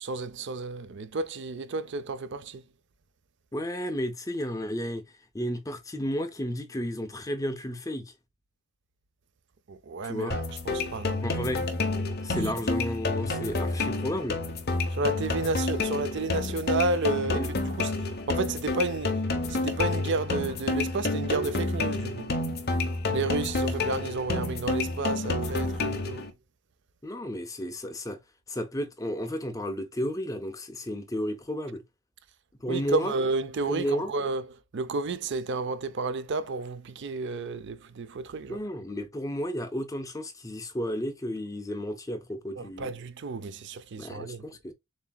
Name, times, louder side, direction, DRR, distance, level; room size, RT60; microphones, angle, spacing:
voice 1, 0.0-2.6 9.7-11.2 14.9-19.2 19.5-22.3 23.1-26.3 32.7-38.6 42.6-44.4, right 3 dB, 55° right, 0.5 m, -31 dB
voice 2, 3.5-5.0 5.3-8.1 10.1-10.4 11.2-11.7 12.2-14.4 17.3-17.5 27.0-28.2 28.5-31.8 32.6-33.1 33.7-34.1 38.5-42.9 44.0-44.7, equal, 15° left, 0.7 m, -32 dB
sound 1, 10.3-26.3, left 2 dB, 45° left, 0.9 m, -29 dB
7.2 x 2.9 x 2.3 m
head